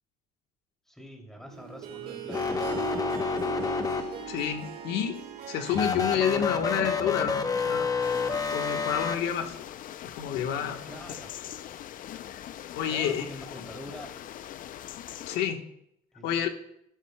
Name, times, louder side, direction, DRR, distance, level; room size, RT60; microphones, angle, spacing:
voice 1, 0.9-3.4 10.8-11.5 12.9-14.1 16.1-16.4, equal, 5° left, 2 dB, 2.7 m, -45 dB
Harp, 1.5-8.0, right 8 dB, 65° right, 1.9 m, -40 dB
sound 1, 2.3-4.5 5.7-9.2, left 5 dB, 20° left, 0.8 m, -29 dB
voice 2, 4.3-7.9 8.5-9.5 10.0-10.8 12.3-12.4 12.8-13.2 15.3-15.7 16.2-16.5, left 9 dB, 85° left, 6 dB, 1.2 m, -29 dB
sound 2, 8.0-15.4, left 11 dB, 55° left, 0.4 m, -42 dB
13.0 x 12.5 x 2.2 m, 0.74 s
cardioid pair, 110°, 17 cm